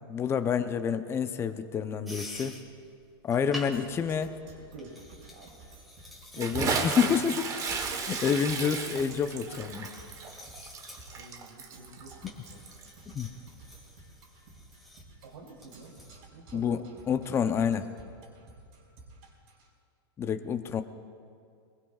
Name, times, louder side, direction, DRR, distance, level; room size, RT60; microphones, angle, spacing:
voice 1, 0.1-2.5 3.2-4.4 6.4-7.4 8.1-9.9 13.1-13.3 16.5-17.9 20.2-20.8, left 7 dB, 20° left, 9 dB, 0.7 m, -28 dB
sound 1, 2.0-16.2, left 1 dB, ahead, 2.5 m, -49 dB
Percussion, 3.7-19.7, right 3 dB, 50° right, 5.1 m, -54 dB
voice 2, 4.7-5.6 6.3-7.2 7.9-8.0 11.1-12.7 15.2-16.0 16.3-17.0, right 2 dB, 85° right, -3 dB, 3.1 m, -49 dB
Bathtub (filling or washing) / Splash splatter, 6.4-12.9, right 5 dB, 25° right, 1.2 m, -34 dB
23.0 x 22.0 x 2.4 m, 2.3 s
supercardioid pair, 140°, 13 cm